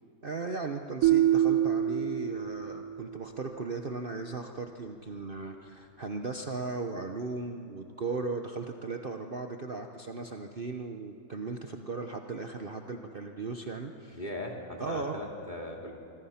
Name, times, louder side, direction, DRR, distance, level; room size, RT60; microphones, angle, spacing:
voice 1, 0.2-14.2 14.8-15.2, right 4 dB, 40° right, 4 dB, 1.0 m, -37 dB
sound 1, 1.0-3.2, right 11 dB, 70° right, 1.1 m, -26 dB
voice 2, 14.1-15.9, left 1 dB, 30° left, 0 dB, 3.0 m, -38 dB
25.5 x 24.5 x 5.8 m, 2.6 s
omnidirectional pair, 1.5 m